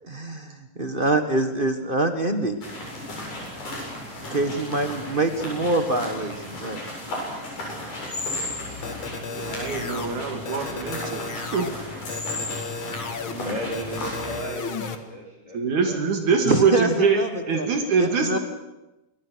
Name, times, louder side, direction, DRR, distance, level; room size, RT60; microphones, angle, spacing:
voice 1, 0.0-2.6 4.3-6.8 12.8-13.5 16.4-17.7 18.0-18.4, right 2 dB, 40° right, 7 dB, 0.7 m, -25 dB
sound 1, 2.6-14.4, left 1 dB, 85° left, 9.5 m, -34 dB
sound 2, 8.8-10.1 10.5-11.7 12.1-13.3 13.7-15.0, left 5 dB, 45° left, 2.1 m, -34 dB
voice 2, 9.3-11.7 15.5-17.2 17.5-18.4, right 5 dB, 70° right, 4 dB, 3.5 m, -23 dB
voice 3, 13.4-17.0 17.5-18.2, equal, 10° left, -2 dB, 3.5 m, -37 dB
27.5 x 24.0 x 6.4 m, 1.0 s
omnidirectional pair, 3.7 m